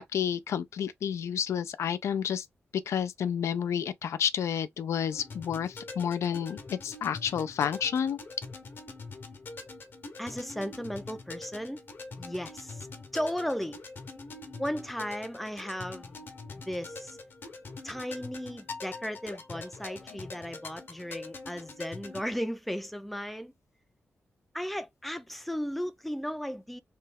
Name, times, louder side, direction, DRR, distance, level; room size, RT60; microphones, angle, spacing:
voice 1, 0.0-2.5 2.7-8.2, left 8 dB, 85° left, 0.4 m, -30 dB
sound 1, 5.1-22.2, left 3 dB, 50° left, 0.8 m, -44 dB
voice 2, 10.2-11.8 12.2-12.9 13.1-13.8 14.6-16.2 16.7-17.2 17.8-23.5 24.5-26.8, equal, ahead, 0.4 m, -35 dB
3.1 x 2.3 x 3.3 m
wide cardioid pair, 145°, 5 cm